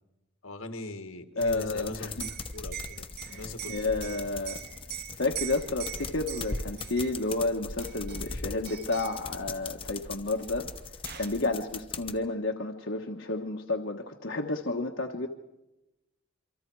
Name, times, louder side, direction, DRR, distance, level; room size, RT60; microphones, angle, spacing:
voice 1, 0.4-4.2 4.6-4.7, left 2 dB, 75° left, 7 dB, 1.9 m, -41 dB
voice 2, 1.4-2.1 3.2-3.4 3.7-4.6 5.2-10.7 11.1-15.3, left 2 dB, 60° left, 2 dB, 1.3 m, -31 dB
sound 1, 1.4-12.2, left 3 dB, 25° left, 1.0 m, -40 dB
Liquid, 2.1-7.4 7.8-8.4 8.7-9.2 10.4-10.5 10.8-11.4, right 12 dB, 45° right, 0.7 m, -42 dB
27.5 x 25.0 x 4.7 m, 0.96 s
head